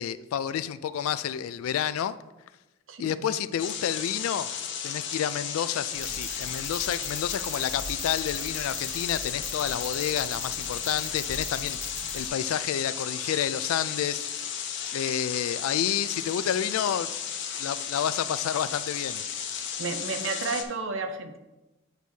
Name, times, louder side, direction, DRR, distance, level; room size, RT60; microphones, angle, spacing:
voice 1, 0.0-2.1 3.0-4.5 4.8-14.6 14.9-17.1 17.6-19.2, left 9 dB, 80° left, 15 dB, 0.3 m, -30 dB
voice 2, 2.9-3.3 19.8-21.4, right 4 dB, 60° right, 7 dB, 0.7 m, -32 dB
sound 1, 3.6-20.6, left 8 dB, 55° left, 0.8 m, -34 dB
sound 2, 5.9-12.3, equal, 15° right, 1.4 m, -40 dB
8.0 x 6.1 x 2.8 m, 1.0 s
head